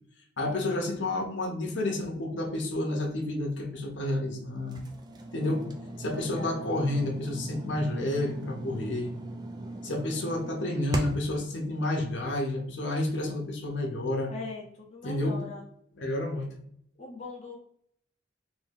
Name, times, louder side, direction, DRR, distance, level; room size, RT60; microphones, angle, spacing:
voice 1, 0.4-4.8 5.3-5.7 6.0-9.1 9.8-14.3 15.0-15.4 16.0-16.6, left 1 dB, 75° left, 2 dB, 0.7 m, -30 dB
sound 1, 4.7-11.4, right 2 dB, 20° right, 0.3 m, -39 dB
voice 2, 6.0-6.6 14.3-15.7 17.0-17.6, left 3 dB, 35° left, -2 dB, 0.6 m, -41 dB
2.7 x 2.6 x 3.5 m, 0.68 s
head